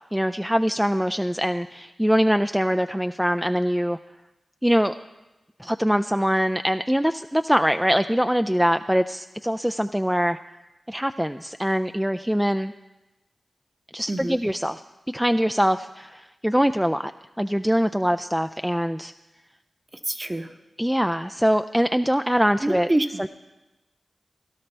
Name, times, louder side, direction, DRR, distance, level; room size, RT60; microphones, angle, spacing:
voice 1, 0.1-4.0 4.6-4.9 5.6-10.4 10.9-12.7 13.9-14.8 15.1-17.1 17.4-19.1 20.8-22.9 23.2-23.3, equal, 5° right, 9 dB, 0.3 m, -23 dB
voice 2, 14.1-14.4 20.0-20.5 22.6-23.2, right 1 dB, 30° right, 7 dB, 0.9 m, -26 dB
17.0 x 11.5 x 3.3 m, 1.1 s
cardioid pair, 45°, 0 cm